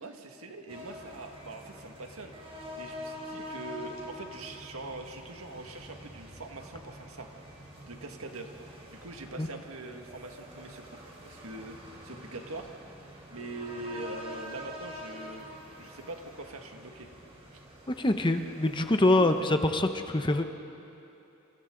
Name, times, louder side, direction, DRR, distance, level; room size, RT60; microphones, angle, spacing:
voice 1, 0.0-7.3 7.8-8.5 8.9-11.0 11.2-12.7 13.0-15.5 15.8-17.1 17.5-17.6 19.1-19.4, right 2 dB, 80° right, 4 dB, 1.8 m, -43 dB
sound 1, 0.7-19.4, equal, 30° right, 4.0 m, -46 dB
voice 2, 17.9-20.4, left 1 dB, 20° left, 7 dB, 0.8 m, -25 dB
27.5 x 27.5 x 3.9 m, 2.9 s
head